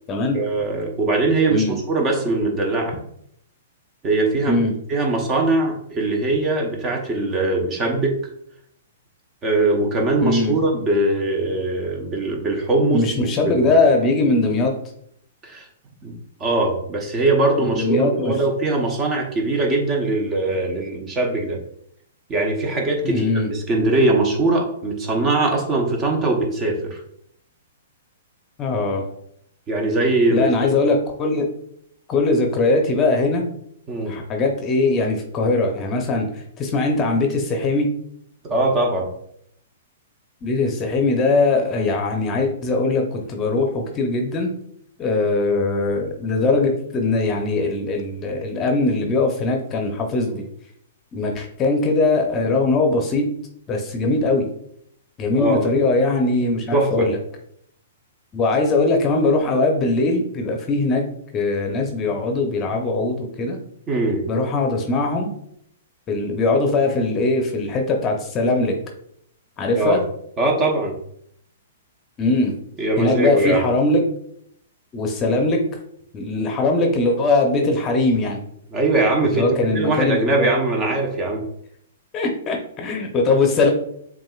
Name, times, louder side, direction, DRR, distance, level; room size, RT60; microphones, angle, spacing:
voice 1, 0.3-3.0 4.0-4.6 4.9-8.1 9.4-13.7 15.4-15.7 16.0-16.1 16.4-21.6 22.3-27.0 29.7-30.7 33.9-34.2 38.4-39.1 55.4-55.6 56.7-57.1 63.9-64.2 69.7-70.0 70.4-70.9 72.8-73.7 78.7-79.5 79.7-81.4, right 2 dB, 25° right, 1 dB, 1.0 m, -21 dB
voice 2, 10.2-10.5 12.9-14.7 17.6-18.4 23.0-23.5 28.6-29.0 30.3-31.5 32.1-33.4 34.1-37.9 40.4-44.5 45.0-50.4 51.1-53.3 53.7-54.5 55.2-57.2 58.3-61.0 61.3-63.6 64.3-65.3 66.1-68.7 69.6-70.0 72.2-72.5 73.0-74.0 74.9-75.6 76.1-78.4 79.2-80.5 82.1-83.7, left 3 dB, 25° left, 3 dB, 0.8 m, -21 dB
7.3 x 2.5 x 2.4 m, 0.69 s
hypercardioid pair, 120°, 0 cm